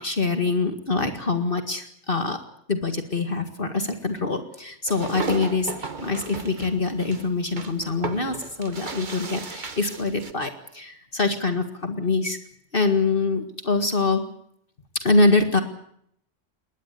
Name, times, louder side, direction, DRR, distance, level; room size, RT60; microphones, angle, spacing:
voice 1, 0.0-2.4 2.7-12.4 12.7-14.2 15.0-15.6, left 3 dB, 45° left, 7 dB, 2.1 m, -24 dB
sound 1, 4.9-10.3, right 4 dB, 40° right, 1.5 m, -34 dB
21.5 x 18.5 x 8.4 m, 0.69 s
omnidirectional pair, 1.3 m